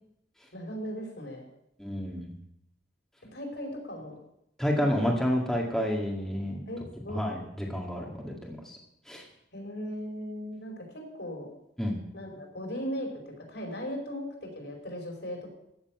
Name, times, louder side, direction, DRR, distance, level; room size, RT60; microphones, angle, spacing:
voice 1, 0.5-1.4 3.2-4.2 5.0-5.1 6.7-7.2 9.5-11.5 12.1-15.5, equal, 65° left, 1 dB, 5.0 m, -38 dB
voice 2, 1.8-2.3 4.6-6.6 7.1-8.8 9.1-9.2 11.8-12.0, equal, ahead, -2 dB, 2.0 m, -29 dB
15.0 x 7.2 x 9.4 m, 0.78 s
head